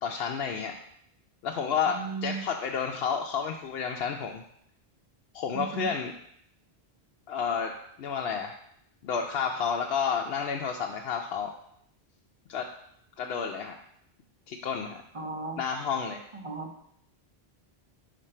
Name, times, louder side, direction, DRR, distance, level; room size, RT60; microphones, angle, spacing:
voice 1, 0.0-0.7 1.4-4.4 5.3-6.1 7.3-8.6 9.0-11.5 12.5-12.7 13.2-13.8 14.5-15.0 15.6-16.2, left 6 dB, 75° left, 2 dB, 0.8 m, -30 dB
voice 2, 1.9-2.4 5.5-6.0 15.1-15.6 16.3-16.7, right 4 dB, 35° right, 4 dB, 0.7 m, -36 dB
5.2 x 5.2 x 4.3 m, 0.70 s
omnidirectional pair, 1.1 m